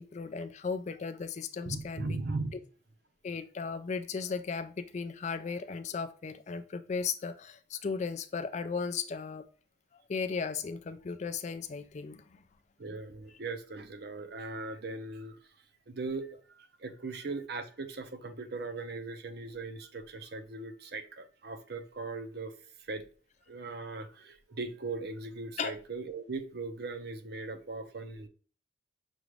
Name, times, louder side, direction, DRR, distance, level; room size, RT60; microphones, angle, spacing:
voice 1, 0.0-2.2 3.2-9.4 9.9-12.4 25.6-25.7, left 5 dB, 35° left, 0.3 m, -36 dB
voice 2, 1.6-2.5 12.8-15.4 15.9-23.0 23.5-28.3, right 3 dB, 55° right, 0.6 m, -39 dB
6.1 x 2.5 x 3.1 m
head